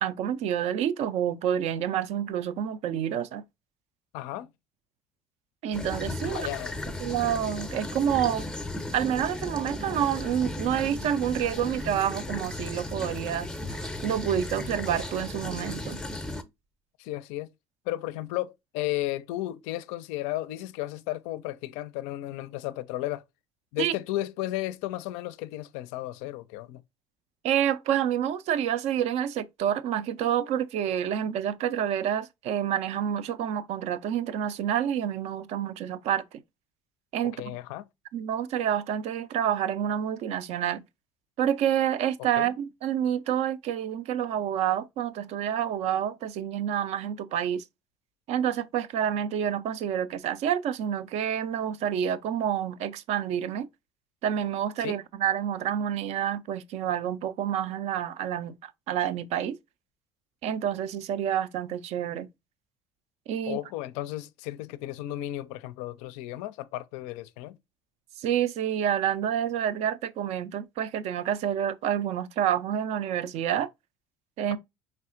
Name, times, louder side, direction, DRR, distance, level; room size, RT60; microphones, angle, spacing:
voice 1, 0.0-3.4 5.6-6.5 7.0-8.5 8.9-13.5 14.0-16.0 23.8-23.9 27.4-36.4 37.1-37.5 38.1-40.8 41.4-47.6 48.3-53.7 54.2-59.6 60.4-62.3 63.3-63.6 68.2-73.7 74.4-74.6, right 9 dB, 50° right, 0.4 m, -28 dB
voice 2, 4.1-4.5 6.2-6.8 17.0-17.5 17.9-23.2 23.7-26.8 37.4-37.8 42.3-42.5 54.8-55.0 63.5-67.6, left 16 dB, 60° left, 0.4 m, -34 dB
sound 1, 5.7-16.4, left 1 dB, 5° left, 0.6 m, -35 dB
sound 2, 13.6-16.0, right 1 dB, 85° right, 1.1 m, -52 dB
4.7 x 3.2 x 2.4 m
figure-of-eight pair, 60°, 14 cm